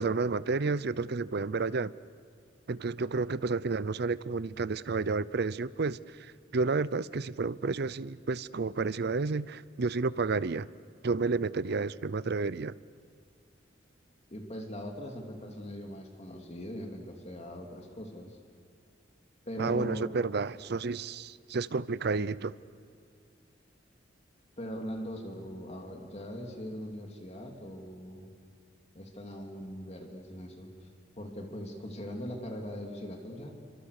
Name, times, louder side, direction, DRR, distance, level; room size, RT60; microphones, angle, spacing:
voice 1, 0.0-1.9 2.7-10.7 11.0-12.7 19.6-22.5, right 4 dB, 60° right, 18 dB, 0.6 m, -31 dB
voice 2, 14.3-18.4 19.5-20.1 24.6-28.3 28.9-30.9 31.2-33.5, equal, 35° left, 2 dB, 2.8 m, -40 dB
29.0 x 25.0 x 6.6 m, 2.4 s
head